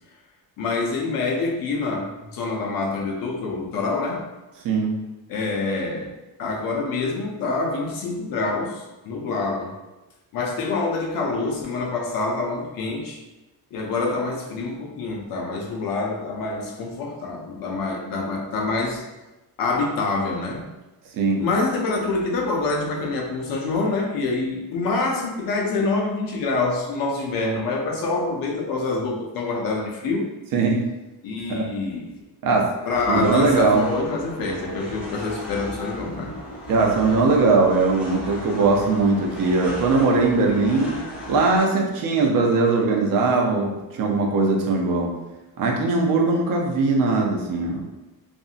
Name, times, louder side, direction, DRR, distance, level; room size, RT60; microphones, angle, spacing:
voice 1, 0.6-4.3 5.3-6.1 6.4-9.8 10.3-13.2 13.7-19.0 19.6-20.7 21.4-30.3 31.2-32.1 32.8-36.4, left 3 dB, 60° left, 0 dB, 0.6 m, -26 dB
voice 2, 30.5-30.8 31.5-31.6 32.4-32.7 33.1-33.8 36.7-41.0 41.3-43.7 44.0-45.1 45.6-47.8, right 3 dB, 60° right, 0 dB, 0.6 m, -20 dB
sound 1, 32.9-41.6, equal, 5° right, 0.4 m, -36 dB
2.7 x 2.5 x 2.4 m, 1.0 s
cardioid pair, 175°, 39 cm